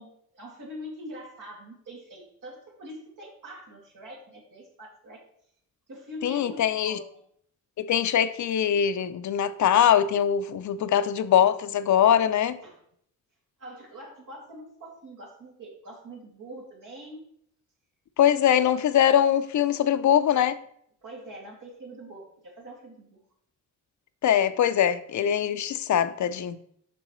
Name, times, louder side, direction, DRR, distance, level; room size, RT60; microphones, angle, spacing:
voice 1, 0.0-5.2 5.9-7.2 10.5-11.0 12.6-12.8 13.6-17.2 21.0-23.2, equal, 85° right, 2.3 m, -44 dB
voice 2, 6.2-7.0 7.8-12.6 18.2-20.6 24.2-26.7, left 9 dB, 65° left, 0.5 m, -22 dB
7.6 x 6.0 x 3.1 m
wide cardioid pair, 125°, 31 cm